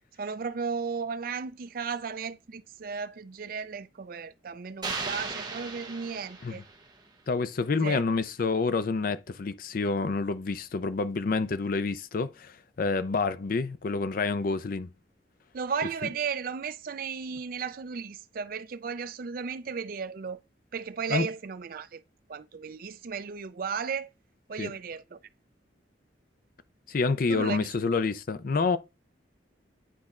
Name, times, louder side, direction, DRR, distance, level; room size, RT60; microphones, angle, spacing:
voice 1, 0.2-6.6 7.7-8.0 15.5-20.4 20.7-22.0 22.3-24.1 24.5-25.2 27.3-28.0, right 5 dB, 50° right, 0.4 m, -35 dB
sound 1, 4.8-7.0, right 4 dB, 20° right, 0.9 m, -36 dB
voice 2, 7.3-14.9 21.1-21.3 24.6-24.7 26.9-28.8, left 4 dB, 50° left, 0.4 m, -28 dB
9.9 x 4.2 x 2.4 m
head